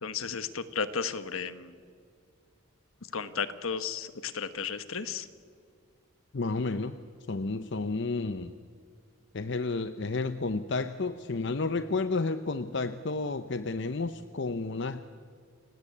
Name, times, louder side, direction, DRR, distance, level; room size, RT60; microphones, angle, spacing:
voice 1, 0.0-1.8 3.1-5.3, left 6 dB, 75° left, 12 dB, 1.2 m, -34 dB
voice 2, 6.3-7.0 7.3-8.5 9.3-15.0, left 3 dB, 55° left, 11 dB, 0.7 m, -31 dB
29.0 x 17.5 x 8.5 m, 2.2 s
head